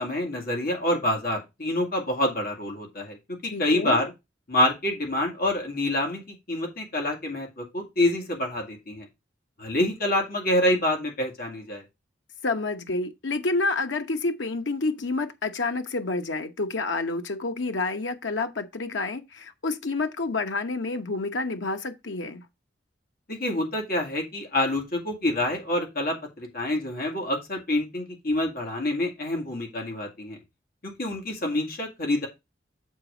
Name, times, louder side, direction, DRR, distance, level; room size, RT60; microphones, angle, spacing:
voice 1, 0.0-3.2 3.4-4.1 4.5-9.1 9.6-11.8 23.3-30.4 30.8-32.3, left 1 dB, 55° left, 2.2 m, -27 dB
voice 2, 3.5-4.0 12.4-22.4, left 3 dB, 85° left, 1.0 m, -29 dB
7.5 x 4.1 x 5.0 m
head